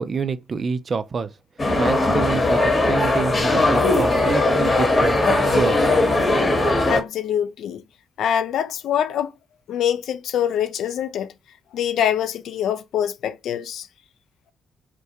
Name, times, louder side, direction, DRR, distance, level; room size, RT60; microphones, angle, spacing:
voice 1, 0.0-1.3 1.8-6.0, right 5 dB, 45° right, 0.3 m, -27 dB
sound 1, 1.6-7.0, left 2 dB, 30° left, 0.9 m, -19 dB
voice 2, 6.9-7.8 8.2-9.3 9.7-11.3 11.7-13.9, left 9 dB, 65° left, 0.3 m, -24 dB
2.2 x 2.2 x 2.7 m
hypercardioid pair, 40°, 0 cm